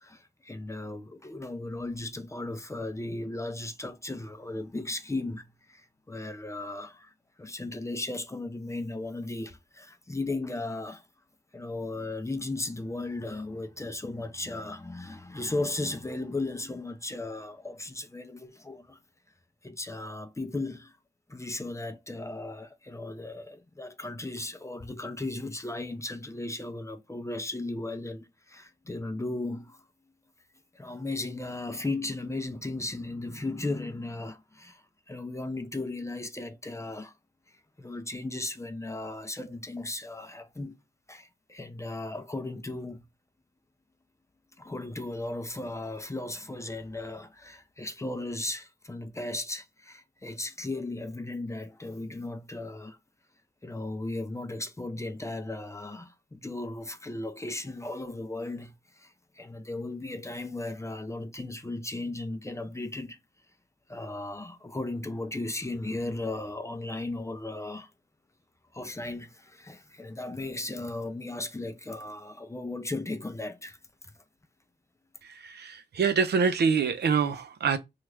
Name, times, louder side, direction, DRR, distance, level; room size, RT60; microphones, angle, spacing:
voice 1, 0.0-7.1 7.4-11.0 11.5-19.0 19.6-20.9 21.3-29.8 30.7-37.1 37.8-40.8 41.1-43.0 44.6-53.0 53.6-63.2 63.9-67.9 68.7-73.8 74.0-74.1, left 2 dB, 15° left, 0.5 m, -36 dB
voice 2, 75.2-77.8, right 6 dB, 70° right, 0.5 m, -26 dB
3.0 x 2.4 x 3.2 m
cardioid pair, 65°, 18 cm